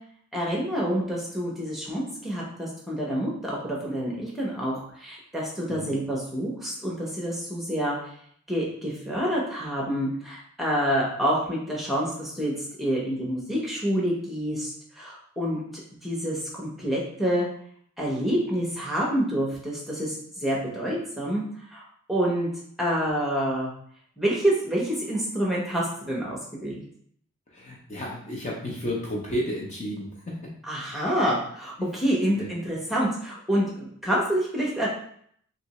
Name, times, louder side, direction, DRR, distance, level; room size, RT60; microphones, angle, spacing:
voice 1, 0.3-8.0 8.5-12.5 12.8-15.6 16.0-17.5 18.0-21.4 21.7-21.8 22.1-22.5 22.8-23.7 24.2-26.8 30.6-34.9, equal, ahead, -5 dB, 0.8 m, -27 dB
voice 2, 27.5-30.4 32.4-32.5, equal, 30° left, -3 dB, 0.6 m, -32 dB
3.3 x 2.8 x 3.0 m, 0.63 s
head